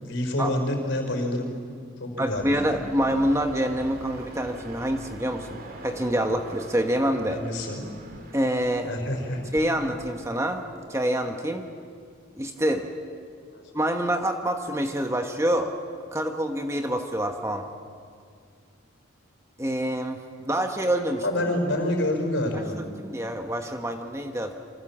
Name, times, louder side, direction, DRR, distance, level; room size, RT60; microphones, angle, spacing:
voice 1, 0.0-1.5 2.0-2.8 7.3-7.9 8.9-9.4 13.5-13.6 21.2-22.8, left 1 dB, 60° left, 4 dB, 5.0 m, -27 dB
voice 2, 2.2-7.4 8.3-8.9 9.5-10.6 10.9-11.6 12.4-12.9 13.7-15.7 16.1-17.6 19.6-21.2 22.8-24.5, right 1 dB, 15° right, 4 dB, 1.3 m, -26 dB
sound 1, 2.3-10.6, right 1 dB, 45° right, 2.4 m, -44 dB
28.0 x 25.0 x 7.4 m, 2.2 s
head